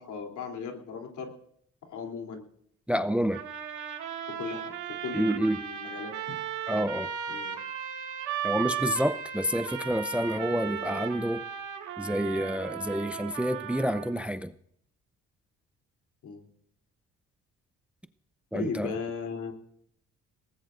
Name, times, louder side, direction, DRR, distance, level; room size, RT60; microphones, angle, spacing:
voice 1, 0.0-1.3 1.8-2.5 4.4-4.7 5.0-6.4 7.3-7.6 16.2-16.5 18.5-19.5, left 5 dB, 75° left, 2 dB, 3.3 m, -37 dB
voice 2, 2.9-3.4 5.1-5.6 6.7-7.1 8.4-11.4 12.0-14.5 18.5-18.9, equal, 5° right, 12 dB, 0.6 m, -28 dB
sound 1, 3.3-14.3, right 9 dB, 80° right, 2.2 m, -36 dB
21.5 x 18.5 x 2.6 m, 0.69 s
cardioid pair, 90°, 30 cm